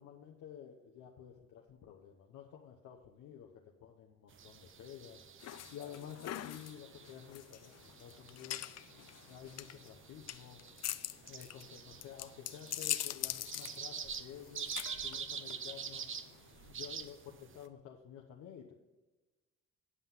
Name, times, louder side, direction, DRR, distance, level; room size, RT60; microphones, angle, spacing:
voice 1, 0.0-5.2 5.7-8.6 9.3-10.6 11.2-14.7 15.0-16.0 16.7-18.7, left 9 dB, 80° left, 0 dB, 1.0 m, -51 dB
sound 1, 4.3-17.7, right 7 dB, 40° right, 0.7 m, -47 dB
sound 2, 5.4-16.7, left 13 dB, 60° left, 0.5 m, -43 dB
9.8 x 5.7 x 5.7 m, 1.2 s
cardioid pair, 90°, 30 cm